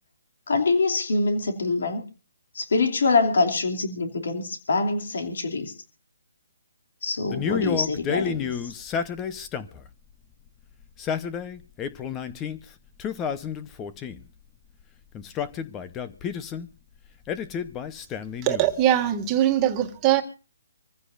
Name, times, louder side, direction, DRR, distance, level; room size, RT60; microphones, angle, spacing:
voice 1, 0.5-2.0 2.5-5.7 7.0-8.7, left 3 dB, 65° left, 4 dB, 2.9 m, -24 dB
Male speech man speaking, 7.3-9.9 10.8-12.6 13.0-14.3 15.1-16.7 17.3-18.8, left 7 dB, 15° left, 0.8 m, -31 dB
voice 2, 18.4-20.2, right 12 dB, 20° right, 4 dB, 1.9 m, -21 dB
26.0 x 15.0 x 2.6 m, 0.35 s
hypercardioid pair, 160°, 0 cm